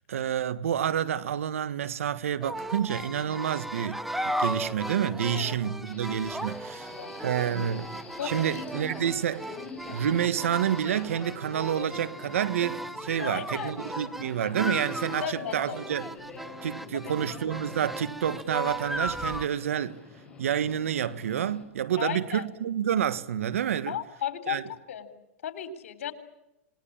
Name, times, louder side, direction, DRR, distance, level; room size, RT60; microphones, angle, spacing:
voice 1, 0.0-6.9 7.2-9.5 9.9-16.1 16.6-20.0 20.4-24.0 24.5-24.6, right 9 dB, 85° right, 1.5 m, -29 dB
sound 1, 2.4-19.5, equal, 5° right, 1.0 m, -36 dB
Subway metro underground, 5.9-21.6, left 4 dB, 15° left, 7.1 m, -45 dB
voice 2, 8.2-8.9 13.2-13.8 15.2-15.8 16.9-17.1 22.0-22.4 23.9-25.1 25.4-26.1, left 9 dB, 75° left, 4.0 m, -35 dB
28.5 x 20.5 x 8.8 m
hypercardioid pair, 135°, 7 cm